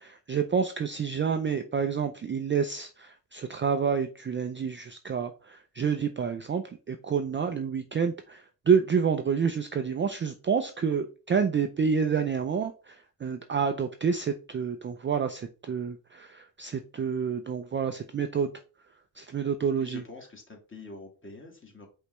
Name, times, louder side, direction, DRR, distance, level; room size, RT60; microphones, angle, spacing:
voice 1, 0.0-18.5 19.2-20.0, right 6 dB, 25° right, 7 dB, 0.4 m, -28 dB
voice 2, 19.8-21.9, left 3 dB, 25° left, 2 dB, 1.7 m, -45 dB
5.1 x 3.2 x 3.0 m, 0.34 s
cardioid pair, 90°, 46 cm